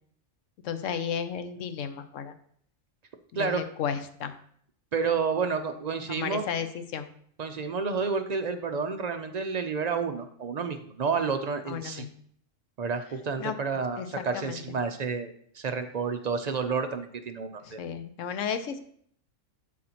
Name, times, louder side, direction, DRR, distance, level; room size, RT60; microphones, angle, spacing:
voice 1, 0.6-2.3 3.3-4.3 6.1-7.1 11.7-12.1 13.4-13.5 14.0-14.6 17.6-18.8, left 7 dB, 75° left, 10 dB, 1.0 m, -33 dB
voice 2, 4.9-6.5 7.4-12.1 12.8-17.8, right 5 dB, 55° right, 7 dB, 0.4 m, -30 dB
11.5 x 4.2 x 2.9 m, 0.62 s
omnidirectional pair, 1.3 m